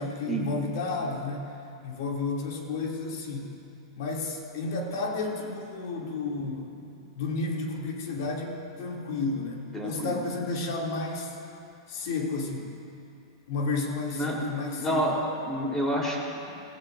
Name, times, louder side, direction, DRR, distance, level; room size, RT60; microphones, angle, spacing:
voice 1, 0.0-1.5 1.8-3.6 4.0-11.4 11.9-12.7 13.5-15.1, left 3 dB, 60° left, -1 dB, 2.8 m, -32 dB
voice 2, 9.7-10.2 14.1-14.5 14.8-16.4, right 1 dB, 15° left, -3 dB, 3.7 m, -29 dB
19.0 x 16.5 x 2.7 m, 2.6 s
hypercardioid pair, 110°, 2 cm